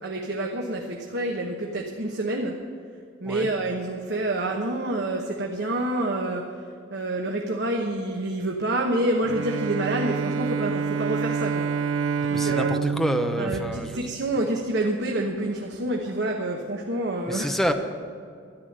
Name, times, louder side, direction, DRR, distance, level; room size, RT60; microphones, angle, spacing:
voice 1, 0.0-2.6 3.2-6.5 6.9-12.7 13.4-17.6, right 1 dB, 60° right, 1 dB, 1.2 m, -28 dB
Bowed string instrument, 9.2-14.6, right 6 dB, 75° right, 0.4 m, -28 dB
voice 2, 12.2-14.0 17.3-17.7, equal, ahead, 5 dB, 0.8 m, -27 dB
12.5 x 11.5 x 6.7 m, 2.3 s
head